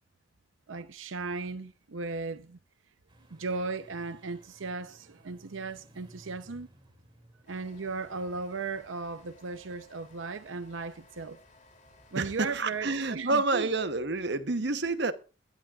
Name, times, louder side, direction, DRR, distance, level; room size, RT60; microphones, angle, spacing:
voice 1, 0.7-2.6 3.3-6.7 7.5-11.4 12.1-13.7, right 4 dB, 85° right, 0.7 m, -36 dB
sound 1, 3.1-12.9, right 1 dB, 25° right, 2.6 m, -60 dB
sound 2, 7.5-13.0, left 2 dB, 40° left, 3.1 m, -59 dB
voice 2, 12.1-15.1, right 3 dB, 60° right, 1.0 m, -29 dB
21.5 x 11.5 x 2.4 m
head